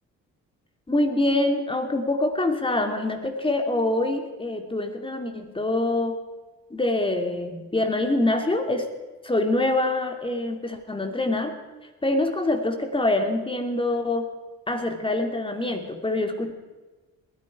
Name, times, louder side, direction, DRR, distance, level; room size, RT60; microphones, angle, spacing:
voice 1, 0.9-6.2 6.7-8.9 9.2-11.6 12.0-14.3 14.7-16.5, left 2 dB, 15° left, 5 dB, 2.6 m, -25 dB
20.5 x 13.5 x 4.8 m, 1.2 s
cardioid pair, 90°, 30 cm